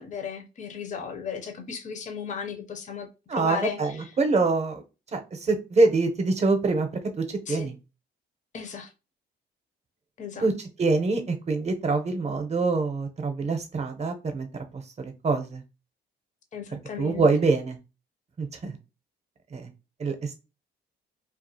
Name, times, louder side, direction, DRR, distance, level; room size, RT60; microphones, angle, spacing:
voice 1, 0.0-3.8 7.5-7.7 8.5-8.9 10.2-10.5 16.5-17.3, left 7 dB, 40° left, 0.5 m, -35 dB
voice 2, 3.3-4.8 5.1-6.9 7.2-7.8 10.4-14.5 14.7-15.6 17.0-17.8 18.4-18.7 19.5-19.7 20.0-20.3, right 3 dB, 35° right, 0.6 m, -25 dB
2.4 x 2.4 x 2.7 m
cardioid pair, 90°, 20 cm